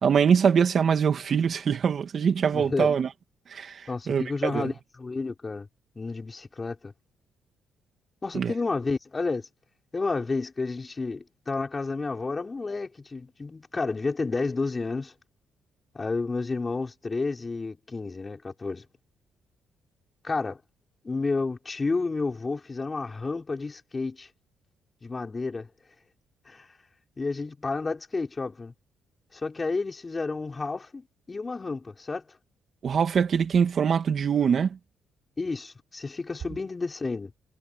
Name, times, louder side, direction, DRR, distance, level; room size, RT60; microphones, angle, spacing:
voice 1, 0.0-3.1 3.5-4.7 8.3-8.5 32.8-34.8, right 7 dB, 50° right, 2.6 m, -23 dB
voice 2, 2.5-2.9 3.9-5.7 6.0-6.9 8.2-9.5 9.9-15.1 15.9-18.9 20.2-20.6 21.0-24.3 25.0-25.7 26.5-26.7 27.2-28.7 29.3-32.2 35.4-37.3, left 3 dB, 25° left, 5.5 m, -31 dB
cardioid pair, 90°, 0 cm